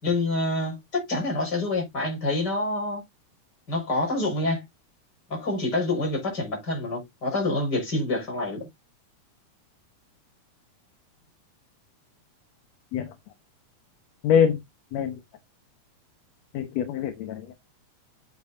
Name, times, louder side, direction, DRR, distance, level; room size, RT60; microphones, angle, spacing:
voice 1, 0.0-3.0 3.7-4.6 5.3-8.6, left 2 dB, 30° left, 6.1 m, -27 dB
voice 2, 14.2-14.6 14.9-15.2 16.5-17.5, left 8 dB, 70° left, 2.2 m, -24 dB
9.3 x 8.4 x 2.7 m
omnidirectional pair, 3.4 m